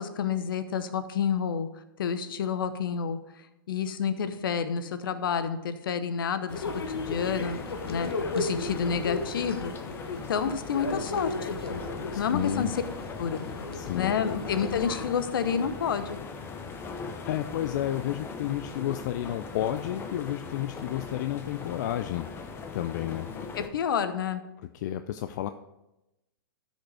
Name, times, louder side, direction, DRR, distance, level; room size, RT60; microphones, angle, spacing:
voice 1, 0.0-1.7 2.0-3.2 3.7-7.6 7.9-9.7 10.1-11.6 12.2-12.8 13.2-13.4 13.9-16.2 23.6-24.4, left 7 dB, 65° left, 11 dB, 0.9 m, -29 dB
sound 1, 6.5-15.1, left 3 dB, 85° left, 1.1 m, -35 dB
sound 2, 6.5-23.7, left 4 dB, 20° left, 0.9 m, -40 dB
voice 2, 12.1-12.7 13.7-14.1 17.3-22.3 22.7-23.3 24.7-25.5, left 12 dB, 50° left, 9 dB, 0.4 m, -31 dB
12.5 x 5.3 x 4.8 m, 0.94 s
hypercardioid pair, 125°, 12 cm